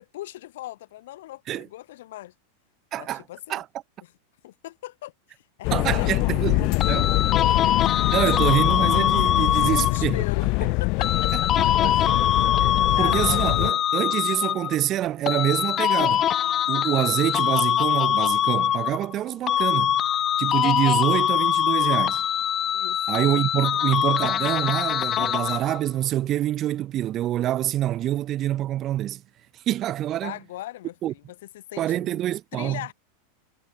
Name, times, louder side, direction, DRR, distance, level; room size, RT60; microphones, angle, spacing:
voice 1, 0.0-2.3 3.0-3.6 4.0-4.1 4.4-6.2 7.5-8.2 9.6-12.2 12.9-13.4 22.7-23.2 30.2-32.2 32.5-32.9, left 15 dB, 70° left, 4.0 m, -39 dB
voice 2, 2.9-3.2 3.5-3.6 5.7-7.3 8.1-10.2 11.3-12.2 12.6-16.3 16.7-20.0 20.4-22.2 23.1-29.2 29.7-30.3 31.0-31.1 31.8-32.8, right 13 dB, 40° right, 1.2 m, -26 dB
sound 1, 5.6-13.7, left 28 dB, 55° left, 1.4 m, -24 dB
sound 2, 6.8-10.2 11.0-14.8 15.3-19.2 19.5-25.8, left 11 dB, 35° left, 0.4 m, -23 dB
hypercardioid pair, 110°, 0 cm